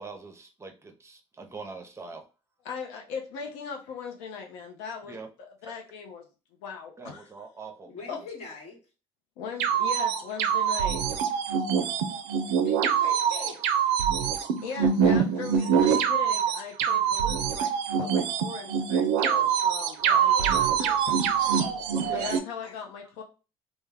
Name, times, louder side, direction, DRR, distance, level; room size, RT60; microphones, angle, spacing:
voice 1, 0.0-2.2 5.1-5.3 5.7-5.8 7.0-7.9 21.9-22.2, right 4 dB, 20° right, 5 dB, 0.6 m, -43 dB
voice 2, 2.6-6.2 6.6-7.3 8.1-8.2 9.4-11.0 14.6-17.7 18.0-21.0 22.1-23.2, left 6 dB, 80° left, 2 dB, 0.5 m, -39 dB
voice 3, 7.8-8.8 12.4-13.6 19.2-19.5 20.1-20.6 21.6-22.7, left 3 dB, 60° left, 1 dB, 1.1 m, -42 dB
sound 1, 9.6-22.4, right 7 dB, 85° right, 0.4 m, -24 dB
2.2 x 2.0 x 3.3 m, 0.32 s
supercardioid pair, 75°, 12 cm